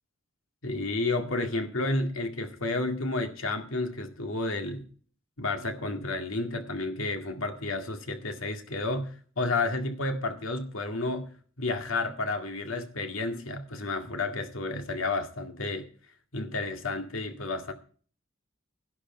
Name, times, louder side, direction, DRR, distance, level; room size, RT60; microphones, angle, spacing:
voice 1, 0.6-4.9 5.4-11.3 11.6-15.9 16.3-17.7, left 2 dB, 80° left, 2.0 m, -31 dB
11.5 x 11.5 x 4.4 m
head